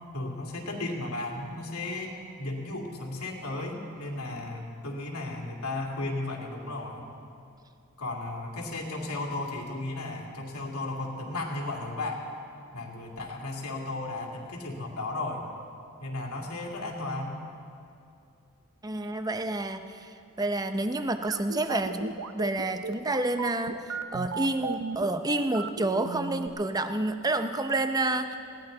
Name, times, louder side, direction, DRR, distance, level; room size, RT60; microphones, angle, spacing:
voice 1, 0.1-2.1 2.4-7.0 8.0-12.2 12.7-15.5 16.0-17.4, left 2 dB, 90° left, 0 dB, 2.6 m, -34 dB
voice 2, 18.8-28.4, right 2 dB, 15° right, 8 dB, 0.6 m, -29 dB
sound 1, 21.3-26.5, right 4 dB, 85° right, 0.7 m, -36 dB
20.0 x 17.0 x 3.9 m, 2.6 s
head